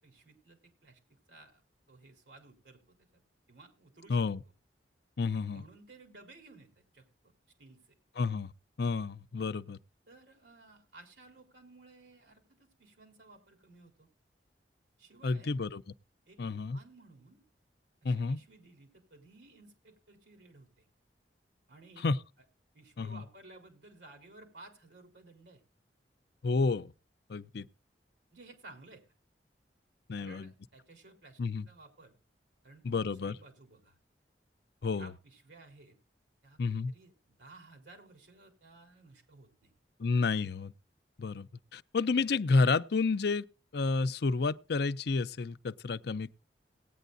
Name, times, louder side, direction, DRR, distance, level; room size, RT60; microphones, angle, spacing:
voice 1, 0.0-1.6 1.9-3.1 3.5-4.2 5.5-7.3 7.6-8.0 10.1-14.1 15.0-15.6 16.3-17.4 18.0-20.9 21.7-22.1 22.7-25.6 28.3-29.0 30.2-31.4 31.7-32.1 32.6-34.0 35.0-36.0 36.4-37.1 37.4-39.7, right 2 dB, 85° right, 3.9 m, -56 dB
voice 2, 4.1-4.4 5.2-5.6 8.2-8.5 8.8-9.8 15.2-15.8 16.4-16.8 18.0-18.4 22.0-22.2 23.0-23.2 26.4-26.9 27.3-27.6 30.1-30.5 31.4-31.7 32.8-33.4 34.8-35.1 36.6-36.9 40.0-40.7 41.2-43.4 43.7-46.3, left 4 dB, 65° left, 0.5 m, -30 dB
18.5 x 9.2 x 2.6 m
head